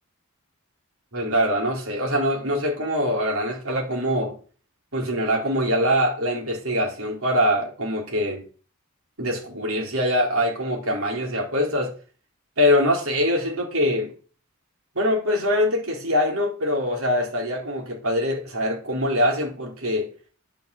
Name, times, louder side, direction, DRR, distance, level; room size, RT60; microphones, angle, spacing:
voice 1, 1.1-4.4 4.9-8.5 9.2-11.9 12.6-14.1 14.9-20.1, equal, 75° right, 4.1 m, -23 dB
10.5 x 6.0 x 6.7 m
head